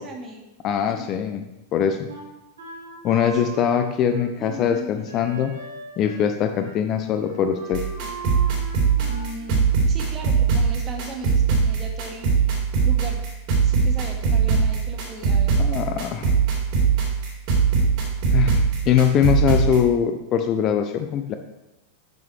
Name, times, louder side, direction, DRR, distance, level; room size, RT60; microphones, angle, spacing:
voice 1, 0.0-0.5 0.9-1.1 3.1-3.4 4.4-4.9 9.1-12.4 12.8-13.2 13.6-15.6, right 2 dB, 25° right, 2 dB, 1.9 m, -37 dB
voice 2, 0.6-1.4 1.7-2.1 3.0-5.5 6.0-7.8 15.6-16.3 18.3-21.3, left 8 dB, 35° left, 7 dB, 0.7 m, -22 dB
Wind instrument woodwind instrument, 2.1-6.3 6.6-6.8 7.0-9.4, right 3 dB, 70° right, 2.9 m, -38 dB
sound 1, 7.7-19.8, right 5 dB, 45° right, 3.7 m, -21 dB
12.0 x 6.6 x 3.4 m, 0.93 s
figure-of-eight pair, 90°, 0 cm